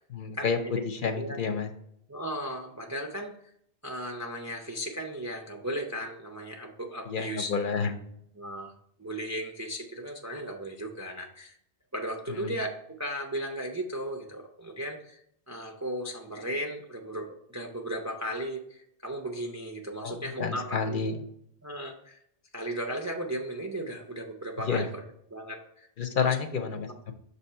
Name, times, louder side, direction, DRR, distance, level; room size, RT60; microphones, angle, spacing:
voice 1, 0.1-0.6 0.8-1.7 7.1-7.9 12.3-12.6 20.0-21.2 24.6-24.9 26.0-27.1, left 5 dB, 60° left, 7 dB, 0.7 m, -30 dB
voice 2, 1.0-1.4 2.1-3.5 3.8-7.5 8.4-8.7 9.0-11.5 11.9-12.7 13.0-15.2 15.5-21.1 21.6-22.2 22.5-25.0 25.3-25.9 26.2-26.4, right 1 dB, 25° right, 3 dB, 0.3 m, -36 dB
6.6 x 2.7 x 5.4 m, 0.72 s
omnidirectional pair, 1.1 m